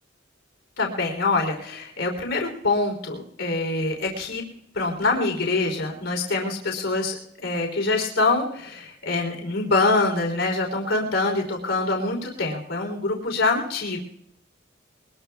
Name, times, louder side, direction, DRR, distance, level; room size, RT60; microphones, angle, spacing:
voice 1, 0.8-4.4 4.7-14.0, left 3 dB, 80° left, 1 dB, 3.4 m, -25 dB
23.0 x 21.0 x 2.4 m, 0.71 s
head